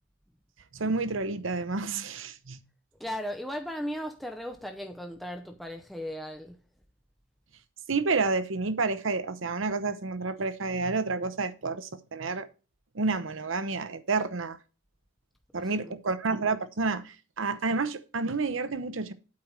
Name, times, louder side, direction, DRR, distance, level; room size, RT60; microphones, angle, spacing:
voice 1, 0.7-2.6 7.9-12.5 12.9-14.6 15.5-19.1, right 3 dB, 75° right, 0.9 m, -30 dB
voice 2, 3.0-6.6 15.6-15.9, equal, ahead, 0.6 m, -37 dB
8.6 x 4.6 x 7.4 m
head